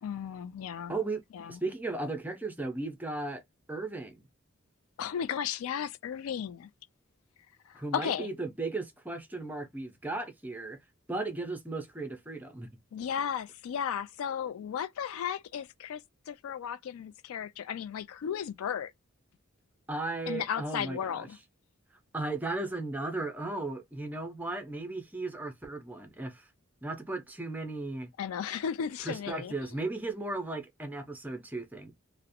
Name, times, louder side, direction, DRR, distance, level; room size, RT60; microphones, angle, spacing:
voice 1, 0.0-1.0 1.3-1.6 5.0-6.7 7.7-8.3 12.9-18.9 20.3-21.4 28.2-29.5, left 8 dB, 85° left, 0.3 m, -35 dB
voice 2, 0.9-1.2 1.5-3.4 3.7-4.3 7.7-10.8 11.1-12.7 19.9-21.3 22.1-26.5 26.8-28.1 29.0-31.9, right 2 dB, 10° right, 0.4 m, -36 dB
2.4 x 2.0 x 2.6 m
head